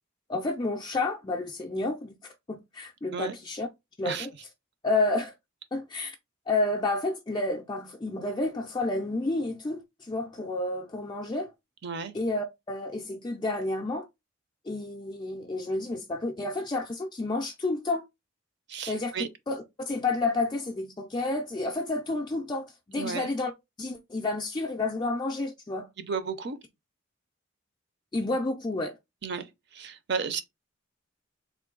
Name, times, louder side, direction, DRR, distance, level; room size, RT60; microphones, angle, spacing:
voice 1, 0.3-3.7 4.0-4.3 4.8-5.3 5.7-6.2 6.5-11.5 12.1-14.1 14.7-18.0 18.9-23.5 23.8-25.9 28.1-28.9, left 2 dB, 20° left, 0.3 m, -30 dB
voice 2, 11.8-12.1 18.7-19.3 23.0-23.3 26.0-26.6 29.2-29.5 29.7-30.4, right 5 dB, 55° right, 0.6 m, -33 dB
3.6 x 2.6 x 3.7 m
head